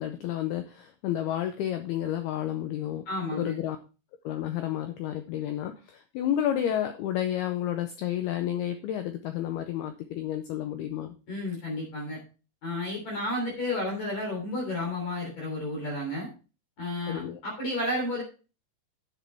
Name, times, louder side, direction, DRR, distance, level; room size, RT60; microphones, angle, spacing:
voice 1, 0.0-3.1 3.3-3.8 4.2-11.2 17.1-17.4, left 11 dB, 85° left, 8 dB, 2.2 m, -31 dB
voice 2, 3.1-3.6 11.3-12.2 12.6-16.3 16.8-18.2, left 1 dB, 40° left, -2 dB, 4.2 m, -32 dB
9.9 x 8.3 x 3.4 m, 0.34 s
omnidirectional pair, 5.3 m